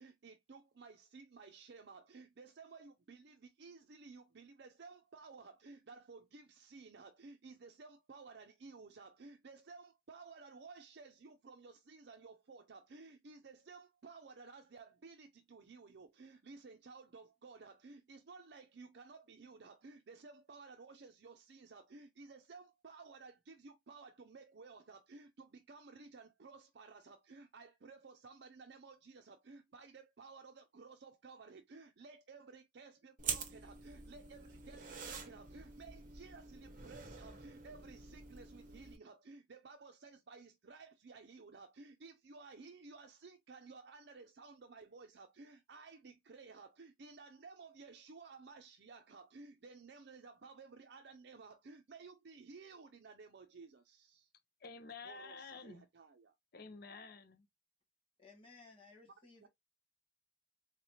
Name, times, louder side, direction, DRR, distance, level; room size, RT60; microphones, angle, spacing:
voice 1, 0.0-54.3 55.0-56.4 59.4-59.5, right 4 dB, 65° right, 0.5 m, -55 dB
sound 1, 33.2-39.0, right 6 dB, 50° right, 1.0 m, -46 dB
voice 2, 54.6-55.9 56.5-57.5, left 4 dB, 60° left, 0.8 m, -50 dB
voice 3, 58.2-59.5, left 3 dB, 30° left, 1.7 m, -59 dB
3.9 x 3.2 x 2.7 m
head